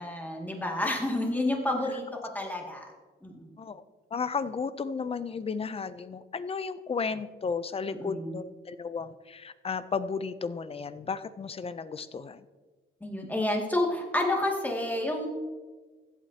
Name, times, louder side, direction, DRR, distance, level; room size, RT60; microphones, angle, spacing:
voice 1, 0.0-2.9 3.2-3.5 8.0-8.4 13.0-15.3, left 1 dB, 10° left, 0 dB, 2.1 m, -30 dB
voice 2, 4.1-12.5, left 5 dB, 30° left, 14 dB, 0.5 m, -34 dB
15.5 x 8.5 x 2.8 m, 1.3 s
cardioid pair, 90°, 20 cm